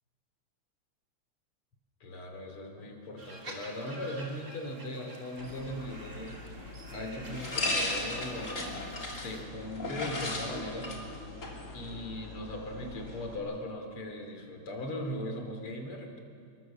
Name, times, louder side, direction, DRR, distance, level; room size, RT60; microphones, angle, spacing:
voice 1, 2.0-6.4 6.9-8.7 9.0-11.0 11.7-16.2, left 1 dB, 85° left, 4 dB, 3.8 m, -39 dB
sound 1, 3.2-9.4, right 2 dB, 35° right, 3.1 m, -49 dB
sound 2, 5.4-13.4, left 2 dB, 35° left, 3.5 m, -37 dB
26.0 x 22.0 x 7.5 m, 2.4 s
omnidirectional pair, 2.4 m